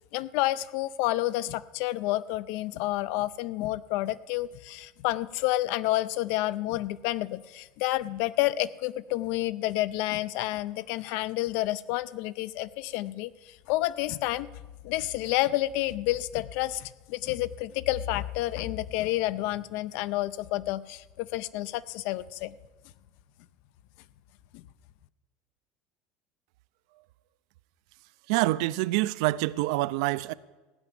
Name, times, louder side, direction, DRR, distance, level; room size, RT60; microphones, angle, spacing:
voice 1, 0.1-14.5 14.8-22.5 24.5-24.6, left 16 dB, 60° left, 0.5 m, -29 dB
voice 2, 28.3-30.3, right 18 dB, 70° right, 0.4 m, -26 dB
16.0 x 6.0 x 10.0 m
cardioid pair, 170°, 4 cm